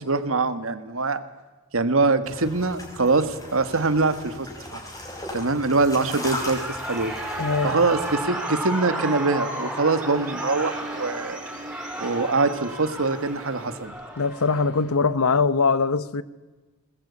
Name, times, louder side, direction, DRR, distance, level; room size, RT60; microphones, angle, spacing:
voice 1, 0.1-1.2 1.7-4.8 5.3-7.1 7.6-11.4 12.0-13.9, right 3 dB, 70° right, 1.5 m, -23 dB
sound 1, 2.2-8.2, left 1 dB, 15° left, 5.4 m, -37 dB
Shout / Cheering, 6.0-14.9, right 1 dB, 5° right, 7.4 m, -33 dB
voice 2, 7.4-7.7 14.2-16.2, left 4 dB, 80° left, 0.9 m, -22 dB
sound 2, 8.3-13.9, right 3 dB, 40° right, 1.7 m, -42 dB
21.0 x 20.0 x 8.5 m
head